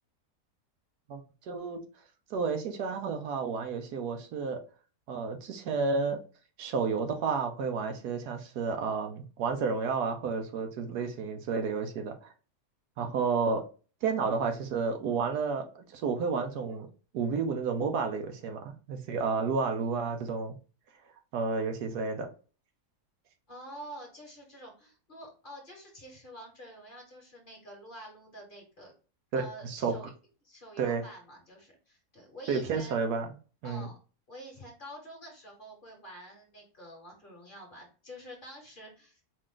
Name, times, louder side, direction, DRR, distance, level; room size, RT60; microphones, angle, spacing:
voice 1, 1.1-1.8 2.3-4.6 5.1-6.2 6.6-12.3 13.0-13.6 14.0-16.9 17.1-20.6 21.3-22.3 29.3-29.9 30.8-31.0 32.5-33.3 33.6-33.9, right 5 dB, 80° right, 5 dB, 1.2 m, -31 dB
voice 2, 23.5-28.9 29.4-30.1 30.4-32.9 33.6-34.0 34.3-39.2, equal, 35° left, 0 dB, 1.2 m, -48 dB
4.9 x 2.4 x 3.7 m, 0.36 s
omnidirectional pair, 1.7 m